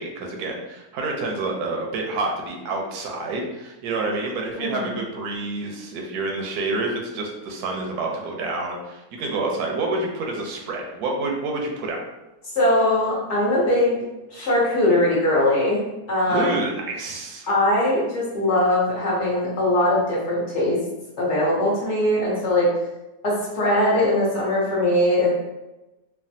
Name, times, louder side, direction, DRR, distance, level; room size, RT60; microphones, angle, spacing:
voice 1, 0.0-12.0 16.2-17.5, right 3 dB, 80° right, 1 dB, 1.1 m, -28 dB
voice 2, 4.6-4.9 12.5-15.8 16.1-16.6 17.5-20.8 21.2-22.7 23.2-25.3, left 1 dB, 55° left, -5 dB, 0.9 m, -21 dB
3.3 x 2.1 x 2.6 m, 1.0 s
omnidirectional pair, 1.7 m